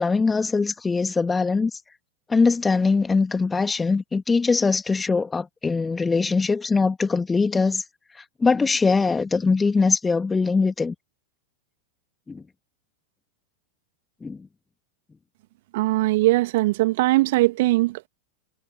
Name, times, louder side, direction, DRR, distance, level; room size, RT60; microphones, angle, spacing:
voice 1, 0.0-1.7 2.3-7.8 8.4-10.9 12.3-12.4 14.2-14.4, left 4 dB, 15° left, 2.6 m, -22 dB
voice 2, 15.7-18.1, right 19 dB, 50° right, 2.6 m, -20 dB
figure-of-eight pair, 90°, 0 cm